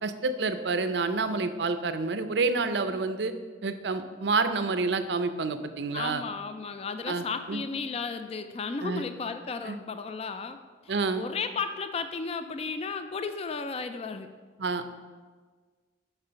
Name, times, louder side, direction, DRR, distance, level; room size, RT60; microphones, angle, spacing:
voice 1, 0.0-3.3 3.6-6.2 7.1-7.6 8.8-9.0 9.6-9.8 10.9-11.2 14.6-15.0, right 4 dB, 75° right, 10 dB, 0.5 m, -28 dB
voice 2, 5.9-10.6 10.8-14.3, left 4 dB, 35° left, 9 dB, 0.3 m, -34 dB
6.7 x 5.9 x 5.6 m, 1.5 s
head